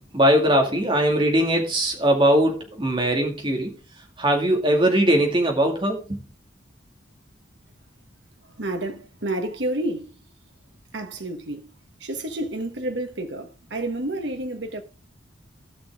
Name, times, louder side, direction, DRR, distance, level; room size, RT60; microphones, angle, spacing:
voice 1, 0.1-3.7 4.2-6.2, right 1 dB, 25° right, 2.3 m, -20 dB
voice 2, 8.5-10.1 10.9-11.7 12.0-14.8, right 1 dB, 65° right, 1.4 m, -30 dB
16.5 x 6.2 x 3.6 m
head